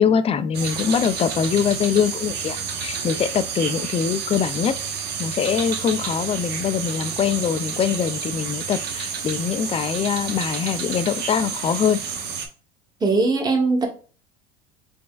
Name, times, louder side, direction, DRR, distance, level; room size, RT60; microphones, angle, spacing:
voice 1, 0.0-4.7 5.2-12.0, left 7 dB, 30° left, 12 dB, 0.4 m, -23 dB
sound 1, 0.5-12.5, right 6 dB, 55° right, 0.9 m, -30 dB
voice 2, 13.0-13.9, right 3 dB, 20° right, 2 dB, 1.2 m, -20 dB
4.0 x 3.4 x 2.3 m, 0.39 s
supercardioid pair, 90°, 20 cm